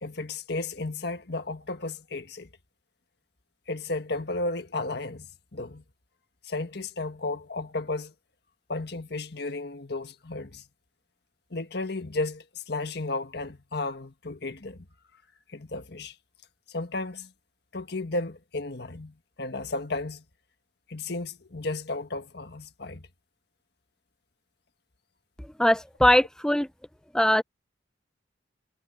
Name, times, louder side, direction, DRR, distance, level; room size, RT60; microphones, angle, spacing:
voice 1, 0.0-2.5 3.7-5.3 5.5-5.8 6.4-8.1 8.7-10.6 11.5-14.8 15.5-16.1 16.7-17.3 17.7-20.2 20.9-23.1, left 2 dB, 60° left, 1.6 m, -33 dB
voice 2, 25.6-26.7 27.1-27.4, left 1 dB, 5° left, 0.5 m, -21 dB
head